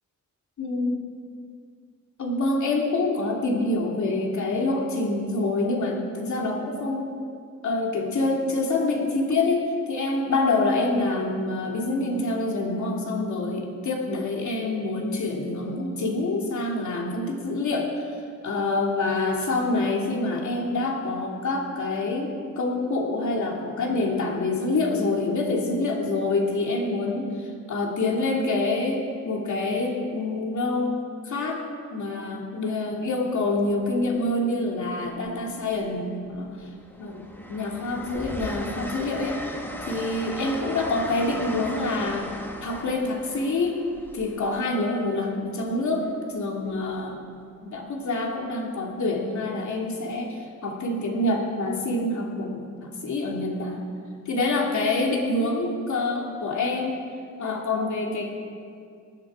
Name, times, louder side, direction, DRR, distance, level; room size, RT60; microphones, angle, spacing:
voice 1, 0.6-1.0 2.2-7.1 7.6-18.1 18.4-31.0 31.2-31.6 31.9-36.5 37.0-39.4 39.9-42.3 42.6-43.8 44.1-47.2 47.6-53.8 54.3-57.0 57.4-58.3, left 2 dB, 70° left, -1 dB, 2.8 m, -26 dB
Train, 33.7-33.9 35.2-35.9 36.3-45.1 46.7-46.9, left 1 dB, 5° left, 1.3 m, -38 dB
19.5 x 14.0 x 4.9 m, 2.3 s
wide cardioid pair, 150°, 30 cm